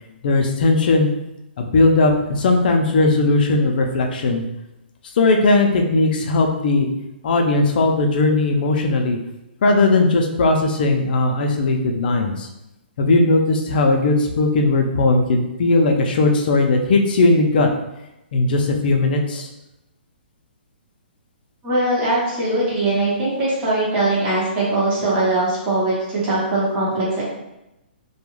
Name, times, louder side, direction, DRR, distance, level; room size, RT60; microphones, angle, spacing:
voice 1, 0.2-1.1 1.6-4.4 5.2-6.9 7.2-9.2 9.6-12.5 13.0-17.7 18.3-19.5, left 2 dB, 55° left, 3 dB, 0.5 m, -18 dB
voice 2, 21.6-27.2, right 2 dB, 25° right, -8 dB, 1.0 m, -21 dB
2.3 x 2.2 x 3.0 m, 0.92 s
hypercardioid pair, 155°, 6 cm